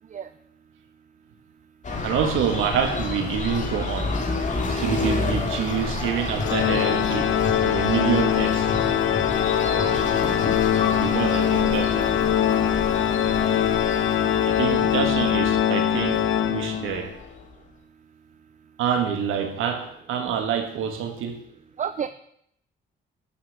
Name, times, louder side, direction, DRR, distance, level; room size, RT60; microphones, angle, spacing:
sound 1, 1.8-17.5, left 3 dB, 40° left, 2.5 m, -29 dB
voice 1, 2.0-8.7 10.9-12.2 14.4-17.1 18.8-21.4, right 7 dB, 85° right, 1.6 m, -27 dB
Organ, 6.4-17.1, left 10 dB, 80° left, 0.9 m, -22 dB
voice 2, 9.6-10.4 14.6-14.9 21.8-22.1, right 8 dB, 40° right, 0.6 m, -32 dB
12.0 x 5.9 x 8.2 m
cardioid pair, 90°, 20 cm